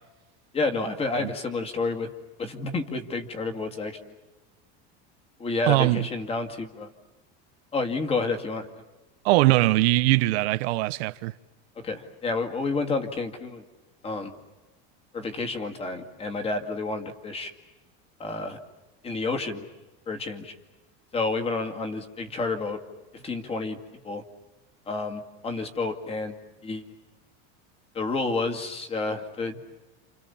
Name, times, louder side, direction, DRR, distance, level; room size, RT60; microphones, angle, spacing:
voice 1, 0.5-2.1 2.4-4.2 5.4-6.9 7.7-8.7 11.8-13.6 14.0-14.3 15.1-17.5 18.2-18.6 19.0-19.7 20.1-20.5 21.1-22.8 23.1-23.8 24.0-24.2 24.9-26.4 26.6-26.9 27.9-29.6, left 3 dB, 20° left, 2.2 m, -30 dB
voice 2, 5.7-6.1 9.2-11.3, right 19 dB, 75° right, 1.1 m, -21 dB
29.5 x 28.0 x 7.1 m
cardioid pair, 170°, 32 cm